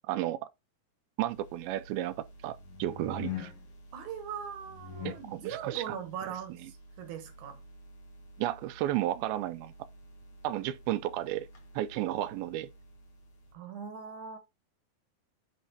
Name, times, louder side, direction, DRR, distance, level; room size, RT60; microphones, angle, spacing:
voice 1, 0.1-0.4 1.2-3.5 5.1-5.9 8.4-9.7 10.4-11.5 11.8-12.7, right 14 dB, 90° right, 2.4 m, -33 dB
sound 1, 1.3-13.5, left 5 dB, 50° left, 1.9 m, -47 dB
voice 2, 3.9-7.6 13.5-14.4, right 8 dB, 70° right, 2.1 m, -40 dB
10.5 x 4.3 x 2.8 m
omnidirectional pair, 4.2 m